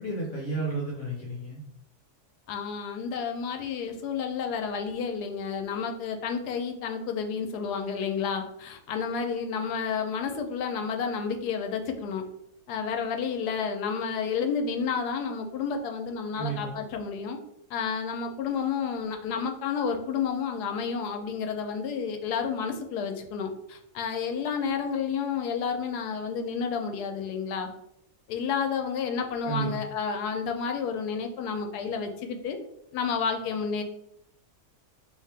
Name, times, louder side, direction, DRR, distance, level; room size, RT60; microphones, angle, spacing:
voice 1, 0.0-1.6 16.4-16.8 29.4-29.7, right 3 dB, 60° left, -2 dB, 0.9 m, -32 dB
voice 2, 2.5-12.2 12.7-17.4 17.7-27.7 28.3-32.6 32.9-33.8, left 6 dB, 80° left, 5 dB, 1.1 m, -30 dB
2.9 x 2.8 x 3.3 m, 0.78 s
omnidirectional pair, 1.7 m